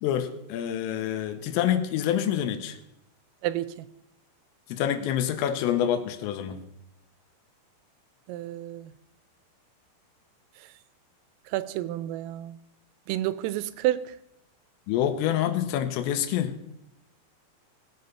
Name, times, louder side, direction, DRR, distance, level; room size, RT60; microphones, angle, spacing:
voice 1, 0.0-2.8 4.7-6.6 14.9-16.5, left 10 dB, 85° left, 9 dB, 3.5 m, -27 dB
voice 2, 3.4-3.9 8.3-8.9 11.5-12.6 13.1-14.1, right 14 dB, 85° right, 15 dB, 3.3 m, -30 dB
18.0 x 8.1 x 5.6 m, 0.83 s
omnidirectional pair, 5.9 m